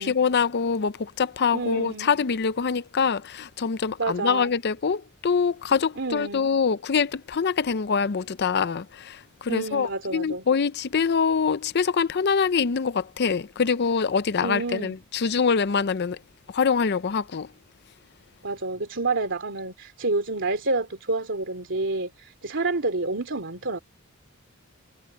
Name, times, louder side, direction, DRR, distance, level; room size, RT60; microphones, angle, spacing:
voice 1, 0.0-16.2 16.5-17.5, left 5 dB, 50° left, 0.5 m, -24 dB
voice 2, 1.5-2.1 4.0-4.5 6.0-6.5 9.5-10.4 14.4-15.0 18.4-23.8, right 3 dB, 55° right, 3.1 m, -29 dB
head